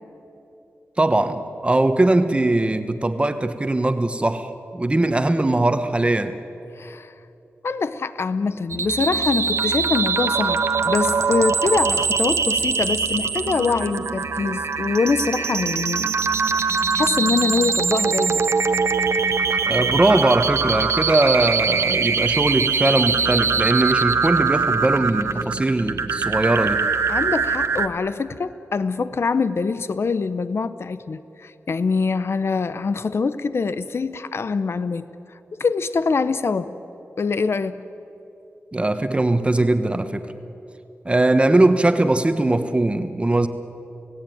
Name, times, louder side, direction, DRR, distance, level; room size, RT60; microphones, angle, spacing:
voice 1, 1.0-6.4 19.6-26.8 38.7-40.3 41.0-43.5, right 2 dB, 25° right, 9 dB, 1.3 m, -20 dB
voice 2, 6.8-7.1 7.6-16.1 16.5-18.5 27.1-35.0 35.6-36.7 37.2-37.8, left 4 dB, 60° left, 13 dB, 0.8 m, -24 dB
sound 1, 8.7-27.9, right 5 dB, 80° right, 1.1 m, -22 dB
28.5 x 17.5 x 9.4 m, 3.0 s
wide cardioid pair, 80°, 5 cm